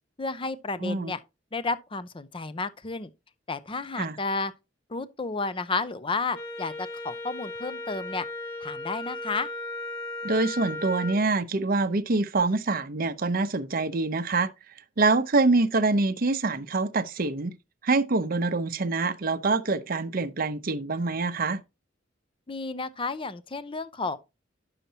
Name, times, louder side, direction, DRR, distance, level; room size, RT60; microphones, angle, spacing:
voice 1, 0.2-1.2 1.5-3.1 3.5-4.5 4.9-8.3 8.6-9.5 22.5-24.2, left 3 dB, 30° left, 0.6 m, -32 dB
voice 2, 0.8-1.1 4.0-4.2 10.2-14.5 15.0-17.6 17.8-21.6, right 3 dB, 50° right, 0.7 m, -25 dB
Wind instrument woodwind instrument, 6.3-11.2, left 2 dB, 80° left, 2.5 m, -36 dB
10.5 x 6.8 x 2.8 m
head